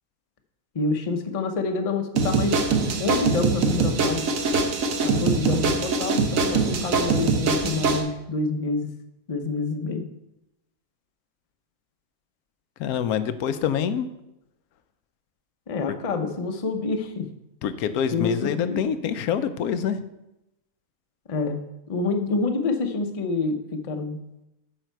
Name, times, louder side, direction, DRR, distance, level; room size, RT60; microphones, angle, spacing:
voice 1, 0.7-4.2 5.0-8.9 9.3-10.1 15.7-17.3 18.1-18.8 21.3-21.6 21.9-24.2, left 3 dB, 35° left, 5 dB, 0.6 m, -27 dB
sound 1, 2.2-8.0, right 4 dB, 70° right, 1.3 m, -23 dB
voice 2, 12.8-14.1 17.6-20.0, left 8 dB, 90° left, 11 dB, 1.1 m, -26 dB
8.8 x 5.8 x 4.5 m, 0.91 s
omnidirectional pair, 1.5 m